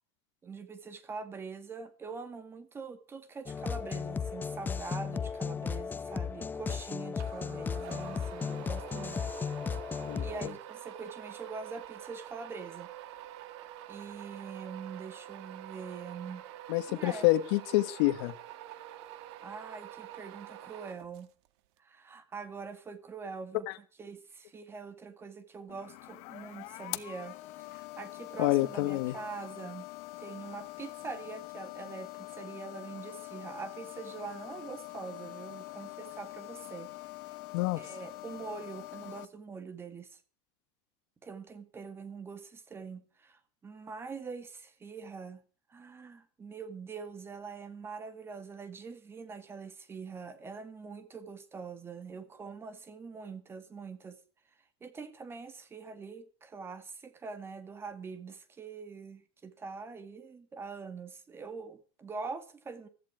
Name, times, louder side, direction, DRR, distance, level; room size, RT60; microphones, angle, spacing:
voice 1, 0.4-9.2 10.2-12.9 13.9-16.4 16.9-17.3 19.4-21.3 21.8-23.7 24.0-29.9 30.2-37.4 37.8-40.2 41.2-45.4 45.7-54.2 54.8-62.9, right 5 dB, 15° right, 2.0 m, -44 dB
sound 1, 3.5-10.5, left 6 dB, 15° left, 0.7 m, -35 dB
sound 2, 7.2-21.5, right 14 dB, 70° right, 1.8 m, -47 dB
voice 2, 16.7-18.3 28.4-29.1 37.5-37.8, left 18 dB, 70° left, 1.6 m, -27 dB
sound 3, 25.7-39.2, left 20 dB, 50° left, 1.1 m, -44 dB
16.0 x 14.0 x 4.8 m
cardioid pair, 165°, 15 cm